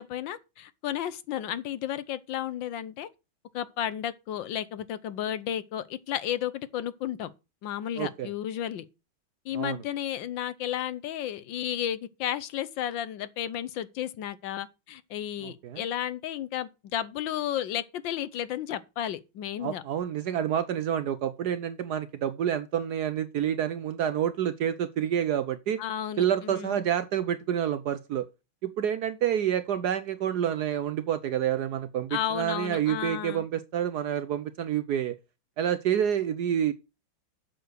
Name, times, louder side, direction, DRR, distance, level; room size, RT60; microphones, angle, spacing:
voice 1, 0.0-3.1 3.5-7.3 7.6-8.9 9.4-19.8 25.8-26.8 32.1-33.5, left 11 dB, 70° left, 1.4 m, -33 dB
voice 2, 8.0-8.3 9.5-9.8 15.4-15.8 19.6-25.8 26.2-28.3 28.6-35.2 35.6-36.7, right 9 dB, 65° right, 1.0 m, -28 dB
7.9 x 6.7 x 6.4 m
omnidirectional pair, 2.2 m